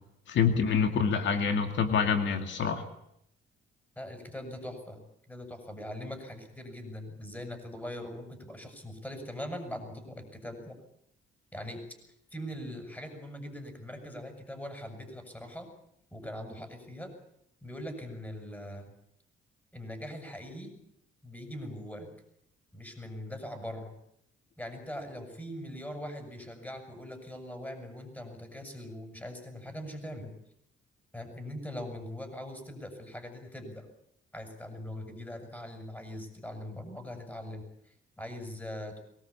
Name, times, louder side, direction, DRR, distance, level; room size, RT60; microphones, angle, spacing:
voice 1, 0.3-2.8, left 6 dB, 70° left, 6 dB, 2.3 m, -26 dB
voice 2, 4.0-5.0 5.3-10.8 11.5-11.9 12.3-15.7 16.1-17.1 17.6-18.9 19.7-20.7 21.2-22.1 22.7-23.9 24.6-30.3 31.1-33.9 34.3-39.0, left 1 dB, 10° left, 6 dB, 7.3 m, -41 dB
23.0 x 18.5 x 8.6 m, 0.75 s
cardioid pair, 90°, 20 cm